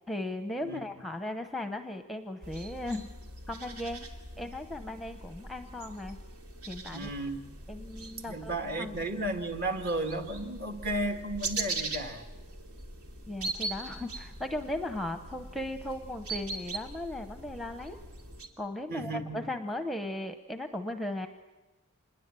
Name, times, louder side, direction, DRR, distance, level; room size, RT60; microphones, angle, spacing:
voice 1, 0.1-3.1 3.5-4.1 4.4-6.2 6.7-7.1 7.7-9.0 13.3-18.0 18.6-21.3, left 1 dB, ahead, 7 dB, 0.8 m, -37 dB
sound 1, 2.4-18.5, right 2 dB, 80° right, 2.7 m, -41 dB
voice 2, 6.9-7.5 8.3-12.3 18.9-19.5, right 1 dB, 45° right, 5 dB, 1.8 m, -34 dB
26.5 x 21.0 x 7.6 m, 1.2 s
head